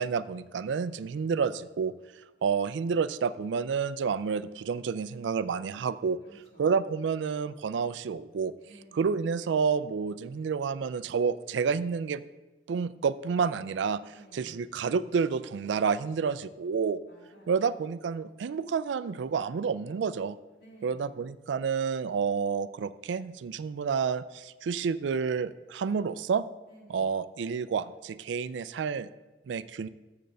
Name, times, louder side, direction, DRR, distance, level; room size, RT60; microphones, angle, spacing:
voice 1, 0.0-1.9 2.4-6.2 6.6-8.5 8.9-12.2 12.7-14.0 14.3-17.0 17.5-20.4 20.8-26.4 26.9-29.1 29.5-29.9, right 6 dB, 85° right, 15 dB, 0.4 m, -29 dB
voice 2, 6.2-6.7 8.6-9.0 14.1-14.5 17.1-17.5 20.6-21.1 26.7-27.1, right 1 dB, 65° left, -3 dB, 2.6 m, -55 dB
6.6 x 6.4 x 6.7 m, 1.1 s
head